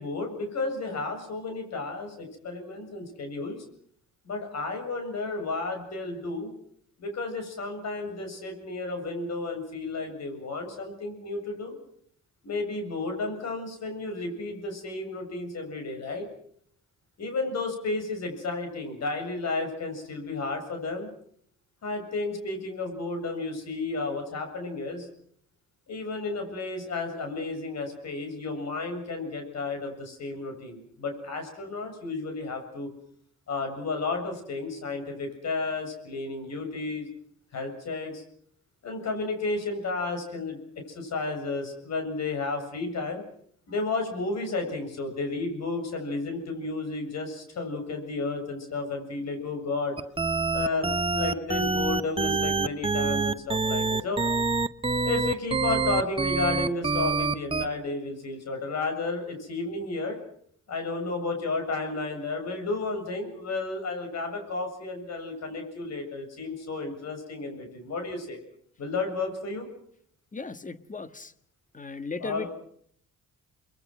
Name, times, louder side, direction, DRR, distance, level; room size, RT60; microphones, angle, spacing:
voice 1, 0.0-3.6 4.2-6.5 7.0-11.8 12.4-16.3 17.2-21.1 21.8-25.1 25.9-32.9 33.5-37.1 37.5-38.2 38.8-40.6 40.9-43.2 43.7-50.0 50.5-54.2 55.0-60.2 60.7-68.4 68.8-69.7 72.2-72.5, left 3 dB, 60° left, 5 dB, 7.5 m, -32 dB
sound 1, 50.0-57.7, right 4 dB, 20° right, 1.1 m, -26 dB
voice 2, 70.3-71.3 71.7-72.5, left 4 dB, 25° left, 12 dB, 1.6 m, -36 dB
29.5 x 22.0 x 6.3 m, 0.64 s
cardioid pair, 90°, 30 cm